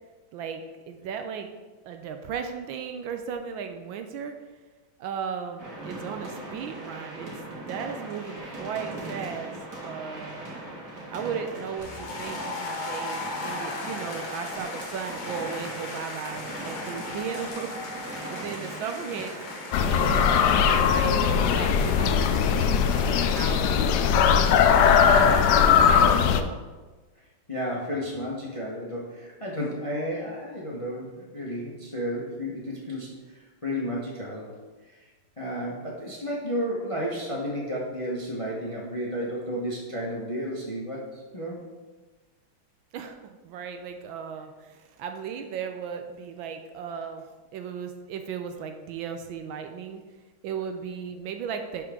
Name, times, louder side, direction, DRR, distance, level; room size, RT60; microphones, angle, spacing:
voice 1, 0.3-1.5 1.8-4.4 5.0-7.3 7.7-9.6 9.8-10.4 11.1-17.7 18.0-19.4 19.8-21.2 21.4-22.7 23.0-23.8 24.7-26.6 42.9-47.2 47.5-50.0 50.4-51.8, right 7 dB, 75° right, 6 dB, 1.3 m, -36 dB
sound 1, 5.6-20.4, right 1 dB, 50° right, 2.3 m, -40 dB
sound 2, 11.8-26.4, left 3 dB, 50° left, 1.5 m, -38 dB
sound 3, 19.7-26.4, left 7 dB, 85° left, 0.9 m, -20 dB
voice 2, 27.5-34.5 34.8-35.1 35.4-41.6, equal, 25° left, -3 dB, 0.8 m, -32 dB
11.0 x 4.6 x 3.6 m, 1.3 s
omnidirectional pair, 2.3 m